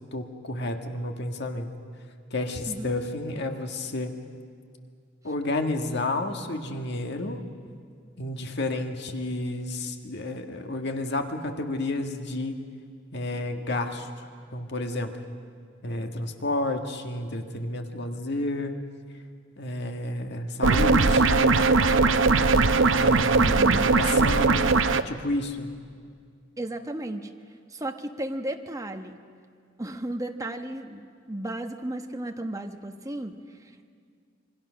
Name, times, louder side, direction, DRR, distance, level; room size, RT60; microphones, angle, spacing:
voice 1, 0.1-1.7 2.3-4.2 5.2-7.4 8.2-12.6 13.1-14.3 14.5-15.2 15.8-18.7 19.6-21.7 22.9-24.8 25.0-25.7, left 2 dB, 60° left, 5 dB, 1.8 m, -31 dB
sound 1, 20.6-25.0, right 3 dB, 75° right, 0.8 m, -20 dB
voice 2, 23.4-24.0 26.6-27.3 27.7-29.2 29.8-33.9, right 1 dB, 15° right, 5 dB, 1.2 m, -34 dB
27.0 x 23.5 x 6.4 m, 2.1 s
head